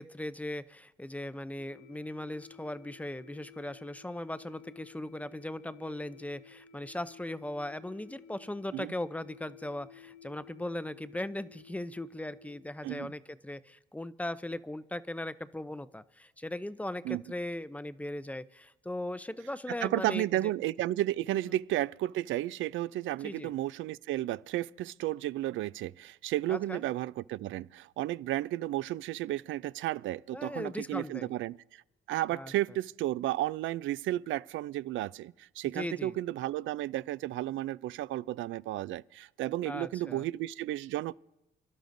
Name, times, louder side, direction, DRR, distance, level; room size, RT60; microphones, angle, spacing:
voice 1, 0.0-20.5 21.5-21.6 23.2-23.5 26.5-26.8 30.3-31.3 32.3-32.5 35.8-36.1 39.7-40.2, left 1 dB, 5° left, 0.5 m, -38 dB
sound 1, 1.6-12.6, left 6 dB, 40° left, 1.4 m, -55 dB
voice 2, 19.8-31.8 32.1-41.1, right 14 dB, 80° right, 0.4 m, -33 dB
29.5 x 12.0 x 2.6 m
cardioid pair, 90°, 20 cm